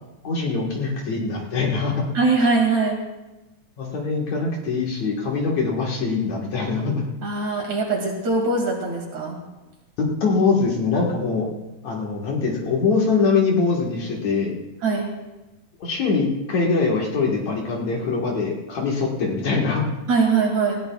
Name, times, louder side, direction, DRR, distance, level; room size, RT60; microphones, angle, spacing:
voice 1, 0.2-2.0 3.8-7.0 10.0-11.5 11.8-14.5 15.8-19.9, left 4 dB, 60° left, -2 dB, 2.6 m, -23 dB
voice 2, 2.1-3.0 7.2-9.4 14.8-15.1 20.1-20.8, right 4 dB, 55° right, 0 dB, 3.6 m, -21 dB
19.5 x 17.0 x 2.4 m, 1.0 s
omnidirectional pair, 4.0 m